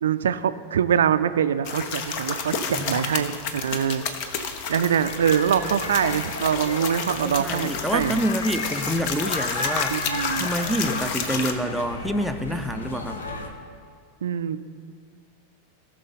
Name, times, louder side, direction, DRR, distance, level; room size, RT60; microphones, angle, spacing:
voice 1, 0.0-4.0 4.7-8.2 9.9-10.5 14.2-14.6, right 8 dB, 65° right, 13 dB, 0.4 m, -24 dB
sound 1, 1.6-11.5, left 6 dB, 45° left, 0.9 m, -31 dB
sound 2, 3.0-13.5, left 2 dB, 70° left, 1.1 m, -35 dB
voice 2, 7.2-10.0 10.4-13.2, equal, ahead, 9 dB, 0.6 m, -27 dB
18.0 x 6.3 x 3.9 m, 2.1 s
figure-of-eight pair, 90°, 0 cm